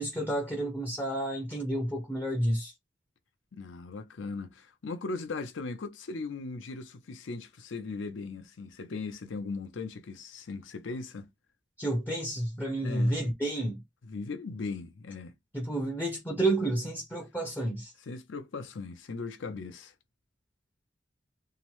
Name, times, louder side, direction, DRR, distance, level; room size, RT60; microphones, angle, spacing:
voice 1, 0.0-2.7 11.8-13.8 15.5-17.9, right 1 dB, 10° left, 0.4 m, -30 dB
voice 2, 3.5-11.3 12.8-13.2 14.1-15.3 18.1-19.9, left 4 dB, 85° left, 0.6 m, -38 dB
2.8 x 2.0 x 3.0 m
head